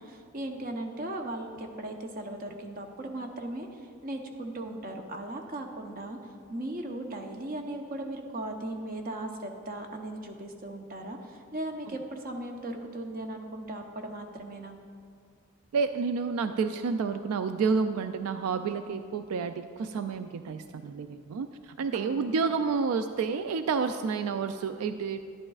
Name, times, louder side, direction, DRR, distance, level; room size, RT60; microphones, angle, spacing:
voice 1, 0.0-6.2 6.5-14.8 21.9-22.4, right 1 dB, 45° right, 3 dB, 0.8 m, -37 dB
voice 2, 15.7-25.2, right 5 dB, 85° right, 9 dB, 0.3 m, -30 dB
11.0 x 11.0 x 2.4 m, 2.2 s
head